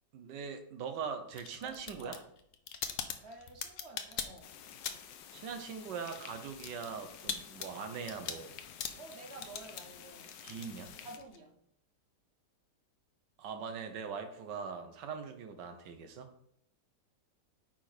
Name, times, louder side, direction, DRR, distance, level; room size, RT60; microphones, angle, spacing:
voice 1, 0.1-2.2 5.3-8.6 10.4-10.9 13.4-16.3, right 6 dB, 80° right, 1.6 m, -41 dB
sound 1, 1.3-5.2 5.5-11.4, left 7 dB, 60° left, 1.0 m, -42 dB
voice 2, 1.6-2.3 3.2-4.6 8.9-10.4 11.0-11.6, right 2 dB, 50° right, 0.9 m, -51 dB
sound 2, 4.4-11.2, left 9 dB, 90° left, 1.4 m, -52 dB
9.1 x 5.1 x 4.4 m
omnidirectional pair, 1.9 m